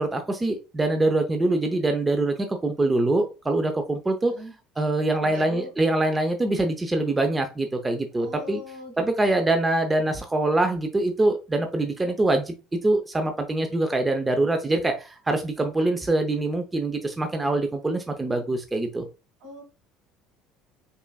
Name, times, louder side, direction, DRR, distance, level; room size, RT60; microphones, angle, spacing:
voice 1, 0.0-4.3 4.8-8.6 9.0-12.5 12.8-19.0, right 2 dB, 15° right, 0.5 m, -24 dB
voice 2, 5.2-5.7 8.2-9.5 19.4-19.6, right 1 dB, 75° right, 1.9 m, -40 dB
5.4 x 2.5 x 2.2 m
supercardioid pair, 105°, 0 cm